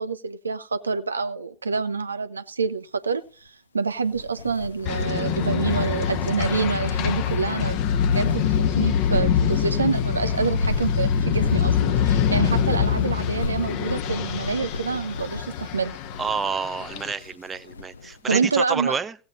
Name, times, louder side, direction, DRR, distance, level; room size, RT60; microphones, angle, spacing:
voice 1, 0.0-3.5 3.7-8.5 8.8-16.0 18.3-19.0, right 5 dB, 75° right, 0.8 m, -27 dB
sound 1, 4.0-18.2, left 3 dB, 70° left, 0.8 m, -34 dB
sound 2, 4.9-17.1, left 8 dB, 40° left, 1.1 m, -24 dB
voice 2, 16.2-19.2, right 5 dB, 15° right, 0.6 m, -29 dB
16.5 x 8.6 x 4.1 m
figure-of-eight pair, 90°, 0 cm